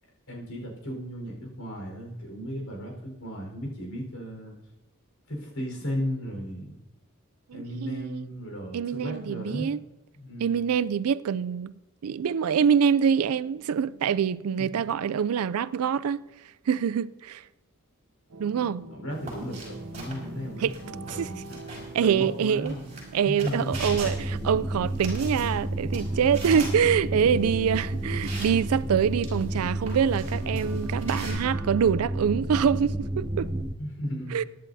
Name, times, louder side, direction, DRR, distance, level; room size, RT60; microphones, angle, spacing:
voice 1, 0.3-4.5 5.3-6.7 7.5-9.7 10.2-10.6 14.6-14.8 18.9-22.9 23.2-23.8 33.8-34.4, equal, 80° left, 4.5 m, -35 dB
voice 2, 7.5-8.3 8.7-9.8 10.4-11.7 12.0-16.2 16.7-17.4 18.4-18.8 20.6-20.7 21.1-21.3 21.9-22.7 23.1-33.5 34.3-34.4, right 7 dB, 90° right, 0.4 m, -25 dB
sound 1, 18.3-33.6, right 1 dB, 75° right, 0.9 m, -44 dB
sound 2, 19.1-31.3, right 2 dB, 30° right, 4.9 m, -43 dB
sound 3, 23.7-33.7, right 1 dB, 5° right, 0.4 m, -31 dB
23.0 x 10.5 x 2.7 m
head